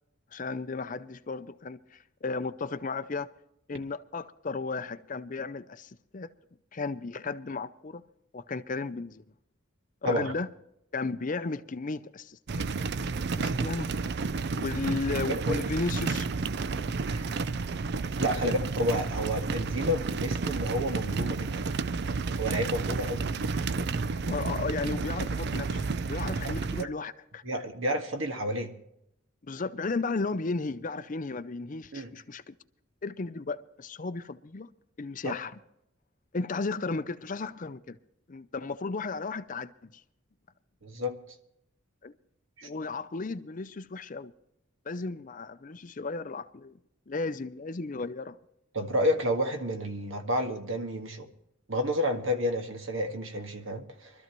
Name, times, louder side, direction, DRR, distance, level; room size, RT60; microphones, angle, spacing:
voice 1, 0.3-3.3 3.7-6.3 6.7-8.0 8.3-9.2 10.0-10.5 10.9-12.4 13.3-13.9 14.5-16.3 24.2-27.4 29.4-32.5 33.0-34.7 35.0-35.5 36.3-38.0 38.3-40.0 42.0-42.1 42.6-44.3 44.9-46.7 47.1-48.4, left 3 dB, 40° left, 0.5 m, -34 dB
sound 1, 12.5-26.8, right 4 dB, 50° right, 0.4 m, -31 dB
voice 2, 15.3-15.6 17.0-17.2 18.2-21.7 22.4-23.3 26.4-26.9 27.4-28.8 31.9-32.1 35.2-35.3 40.8-41.2 42.6-42.7 48.7-51.3 51.7-54.1, equal, 70° right, 1.8 m, -30 dB
24.0 x 13.5 x 3.1 m
head